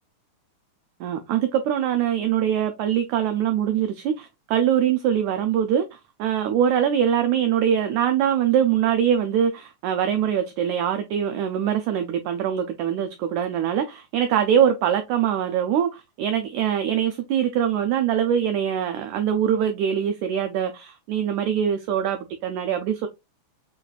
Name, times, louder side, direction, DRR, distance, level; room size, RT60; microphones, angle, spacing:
voice 1, 1.0-23.1, right 9 dB, 90° right, 1.6 m, -23 dB
6.7 x 2.4 x 2.2 m
omnidirectional pair, 3.8 m